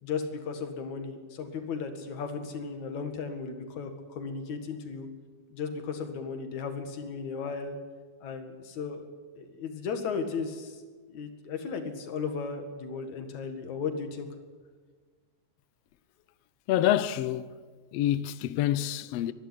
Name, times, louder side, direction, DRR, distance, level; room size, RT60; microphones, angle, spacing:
voice 1, 0.0-5.1 5.5-7.8 8.2-9.1 9.4-10.8 11.1-14.3, left 5 dB, 65° left, 3.1 m, -35 dB
voice 2, 16.7-17.6 17.9-19.3, left 12 dB, 85° left, 1.4 m, -27 dB
23.5 x 11.5 x 9.8 m
omnidirectional pair, 3.7 m